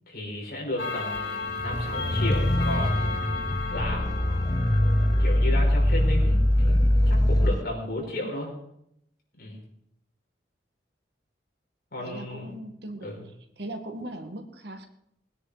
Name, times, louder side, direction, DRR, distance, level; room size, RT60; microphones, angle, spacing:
voice 1, 0.1-4.4 5.2-6.8 7.1-8.5 9.4-9.6 11.9-12.5 13.0-13.3, left 1 dB, 50° left, -2 dB, 5.7 m, -34 dB
Clock, 0.8-6.8, left 4 dB, 75° left, 3.0 m, -35 dB
sound 1, 1.5-7.6, left 1 dB, 20° left, 0.6 m, -23 dB
voice 2, 12.0-13.1 13.6-14.9, right 1 dB, 65° right, 5 dB, 1.8 m, -38 dB
20.5 x 9.8 x 5.1 m, 0.75 s
head